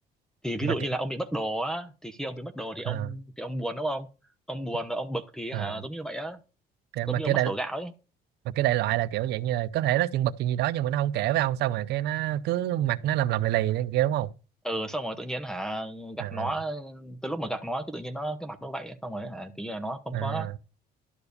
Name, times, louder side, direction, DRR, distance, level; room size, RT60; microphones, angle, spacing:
voice 1, 0.4-4.1 4.5-6.4 7.1-7.9 14.6-20.5, right 1 dB, 5° left, 0.9 m, -33 dB
voice 2, 5.5-5.8 6.9-7.5 8.4-14.3 16.2-16.5 20.1-20.5, right 13 dB, 80° right, 0.6 m, -27 dB
12.0 x 4.8 x 6.6 m
cardioid pair, 110°, 17 cm